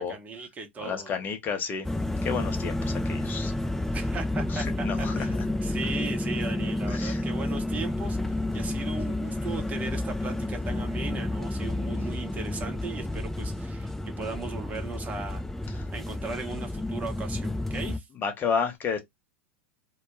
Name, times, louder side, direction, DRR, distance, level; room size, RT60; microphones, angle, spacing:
voice 1, 0.0-1.1 3.9-5.3 5.6-15.4 15.7-18.1, right 4 dB, 20° right, 0.8 m, -38 dB
voice 2, 0.8-1.9 2.2-3.5 4.5-5.4 6.9-7.2 18.2-19.0, left 6 dB, 30° left, 0.8 m, -31 dB
sound 1, 1.8-18.0, left 1 dB, 5° left, 0.4 m, -30 dB
2.3 x 2.1 x 3.0 m
figure-of-eight pair, 90°, 7 cm